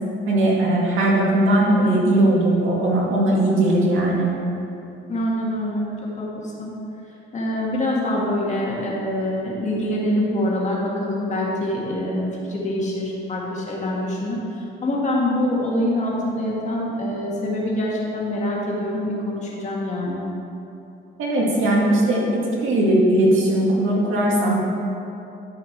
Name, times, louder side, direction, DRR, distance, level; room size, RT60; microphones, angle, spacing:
voice 1, 0.3-4.3 21.2-24.6, right 1 dB, 75° right, -4 dB, 2.1 m, -19 dB
voice 2, 5.1-5.9 6.2-6.7 7.3-14.4 14.8-20.2, left 1 dB, 35° left, -4 dB, 1.7 m, -25 dB
12.0 x 5.0 x 4.5 m, 2.7 s
cardioid pair, 145°, 21 cm